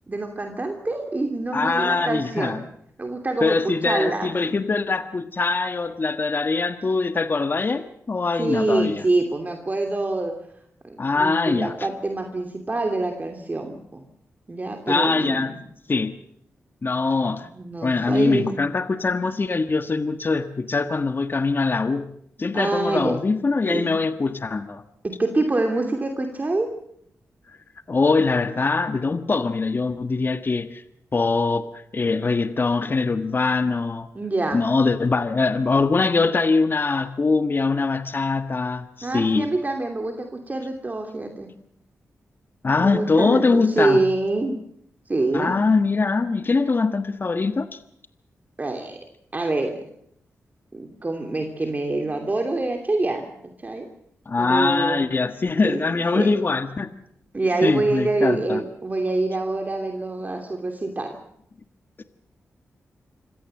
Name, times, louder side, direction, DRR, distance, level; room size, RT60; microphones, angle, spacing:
voice 1, 0.1-2.6 3.0-4.6 8.4-10.4 10.8-14.0 14.5-15.6 17.2-18.5 22.5-23.2 23.7-23.9 25.0-26.7 34.1-34.6 39.0-41.5 42.8-44.6 45.1-45.6 48.6-49.0 49.3-49.8 50.7-53.3 53.6-53.8 54.4-55.0 55.6-56.3 57.3-61.2, right 2 dB, 30° right, 4 dB, 2.9 m, -26 dB
voice 2, 1.5-2.6 3.4-9.0 11.0-11.7 14.9-15.5 15.9-16.1 16.8-17.5 17.8-22.1 22.4-24.8 27.9-30.8 31.1-34.1 34.5-39.5 42.6-44.0 45.3-47.7 54.3-56.9 57.6-58.6 62.0-62.1, left 4 dB, 40° left, 9 dB, 1.4 m, -22 dB
26.0 x 16.5 x 7.7 m, 0.72 s
cardioid pair, 70°, 5 cm